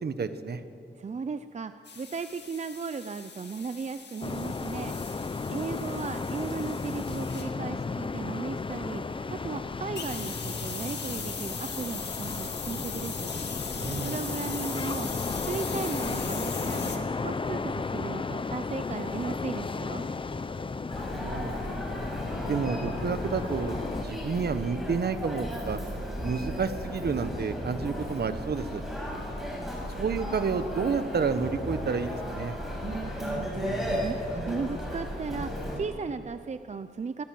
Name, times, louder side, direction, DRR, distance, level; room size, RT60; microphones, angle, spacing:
voice 1, 0.0-0.6 13.8-14.2 21.2-21.5 22.5-23.8 24.0-25.8 26.2-28.8 30.0-32.5, right 5 dB, 55° right, 10 dB, 1.3 m, -30 dB
voice 2, 1.0-13.3 14.0-15.1 15.4-20.1 32.5-35.5 35.8-37.2, right 5 dB, 35° right, 10 dB, 0.6 m, -36 dB
sound 1, 1.9-7.5 9.9-17.0, left 5 dB, 65° left, 2.2 m, -39 dB
sound 2, 4.2-24.0, left 4 dB, 25° left, 0.6 m, -34 dB
Human voice, 20.9-35.8, equal, ahead, 7.0 m, -35 dB
24.5 x 16.5 x 7.7 m, 2.5 s
wide cardioid pair, 120°, 19 cm